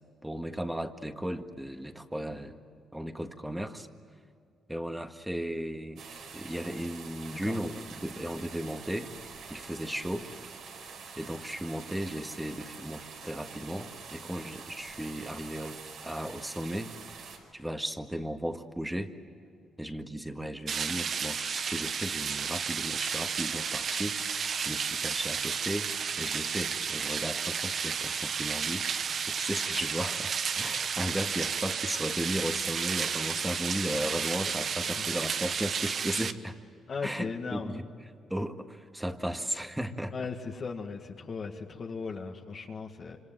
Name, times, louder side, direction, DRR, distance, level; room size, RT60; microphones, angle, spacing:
voice 1, 0.2-2.6 2.9-3.9 4.7-6.0 6.3-9.1 9.5-10.3 11.2-17.0 17.5-19.1 19.8-25.9 26.2-36.6 37.0-37.8 38.3-40.1, equal, 5° right, 6 dB, 1.7 m, -35 dB
sound 1, 6.0-17.4, right 5 dB, 75° right, 5.0 m, -46 dB
sound 2, 20.7-36.3, right 6 dB, 55° right, 1.1 m, -32 dB
voice 2, 36.9-37.8 40.1-43.2, left 4 dB, 45° left, 1 dB, 2.0 m, -37 dB
26.5 x 25.5 x 7.8 m, 2.4 s
cardioid pair, 90°, 0 cm